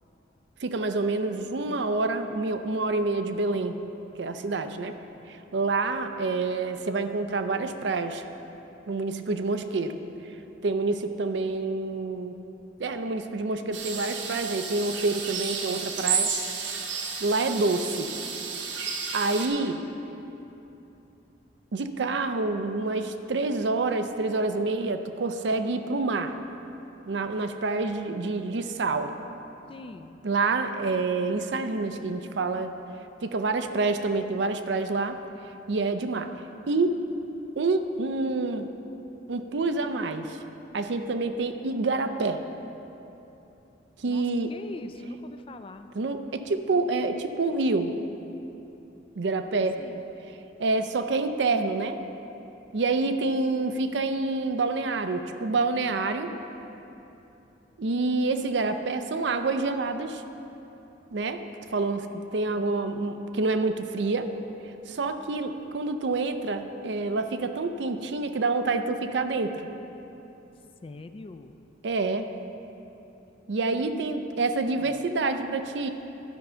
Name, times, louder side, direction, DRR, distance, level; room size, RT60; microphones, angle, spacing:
voice 1, 0.6-3.8 4.2-4.9 5.3-8.2 8.9-10.0 10.6-12.4 12.8-16.3 17.2-18.1 19.1-19.8 21.7-26.4 27.1-29.1 30.2-32.7 33.2-35.2 35.7-36.3 36.7-37.0 37.6-38.7 39.3-40.4 40.7-42.4 44.0-44.5 45.9-47.9 49.2-49.8 50.6-52.0 52.7-56.3 57.8-60.2 61.1-61.4 61.7-64.3 64.9-69.7 71.8-72.3 73.5-75.9, right 3 dB, 70° right, 8 dB, 0.5 m, -27 dB
sound 1, 13.7-19.5, right 5 dB, 85° right, 1.0 m, -32 dB
voice 2, 29.7-30.2 44.1-45.9 49.8-50.0 70.8-71.5 73.9-75.0, left 2 dB, 30° left, 9 dB, 0.3 m, -43 dB
12.5 x 5.3 x 5.6 m, 3.0 s
head